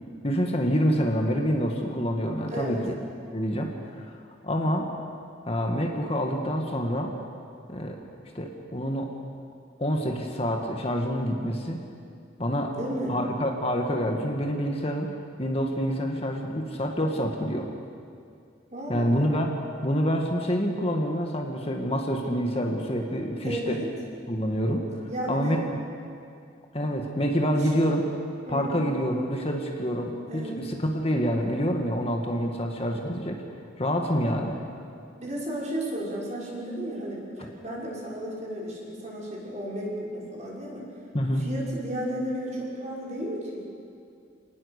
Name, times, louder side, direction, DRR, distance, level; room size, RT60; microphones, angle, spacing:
voice 1, 0.2-2.8 3.3-4.2 4.4-4.9 5.5-7.1 7.7-8.0 8.4-9.1 9.8-11.8 12.4-12.8 13.1-15.1 15.4-17.7 18.9-19.5 19.8-23.8 24.3-24.9 25.3-25.6 26.7-28.0 28.5-33.4 33.8-34.6 41.1-41.4, equal, 30° left, 2 dB, 1.8 m, -27 dB
voice 2, 2.4-2.9 12.7-13.2 18.7-19.3 23.4-23.9 25.1-25.6 27.5-27.7 28.5-28.9 30.3-30.6 35.2-40.9 41.4-43.6, right 1 dB, 40° right, -5 dB, 6.4 m, -33 dB
28.5 x 19.0 x 6.7 m, 2.4 s
head